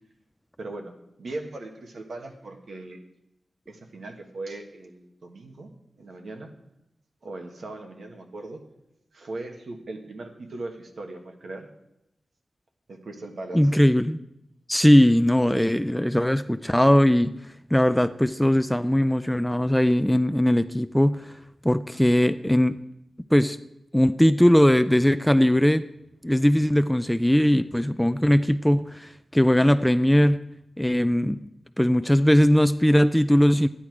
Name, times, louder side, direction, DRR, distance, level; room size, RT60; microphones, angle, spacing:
voice 1, 0.6-3.0 3.7-5.7 6.0-6.5 7.2-8.6 9.1-11.7 12.9-13.7, right 2 dB, 65° right, 4 dB, 1.5 m, -39 dB
voice 2, 13.5-14.2 14.7-17.4 17.7-21.3 21.6-22.8 23.3-23.6 23.9-25.9 26.2-30.4 30.8-31.4 31.8-33.7, equal, 5° left, 12 dB, 0.3 m, -20 dB
12.5 x 10.0 x 4.8 m, 0.86 s
wide cardioid pair, 135°, 0 cm